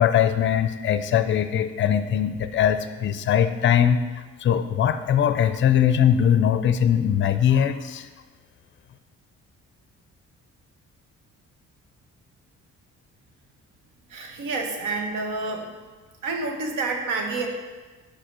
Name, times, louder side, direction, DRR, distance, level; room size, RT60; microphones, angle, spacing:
voice 1, 0.0-4.0 4.4-8.1, left 9 dB, 40° left, 11 dB, 0.4 m, -21 dB
voice 2, 14.1-15.7 16.2-17.5, right 3 dB, 85° right, 3 dB, 1.0 m, -28 dB
5.1 x 4.4 x 5.9 m, 1.3 s
cardioid pair, 90°, 30 cm